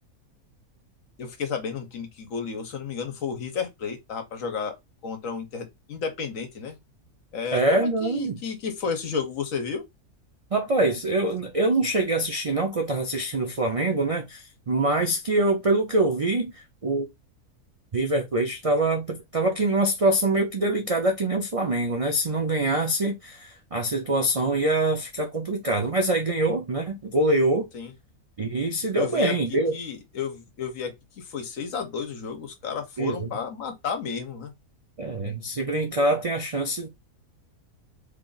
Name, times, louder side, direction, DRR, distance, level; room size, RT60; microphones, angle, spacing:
voice 1, 1.2-4.7 5.0-6.8 7.3-9.8 27.7-27.9 28.9-34.5, left 6 dB, 65° left, 1.2 m, -32 dB
voice 2, 7.5-8.4 10.5-17.1 17.9-27.7 28.4-29.7 33.0-33.3 35.0-36.9, right 2 dB, 65° right, 0.3 m, -24 dB
3.3 x 2.4 x 3.9 m
omnidirectional pair, 1.6 m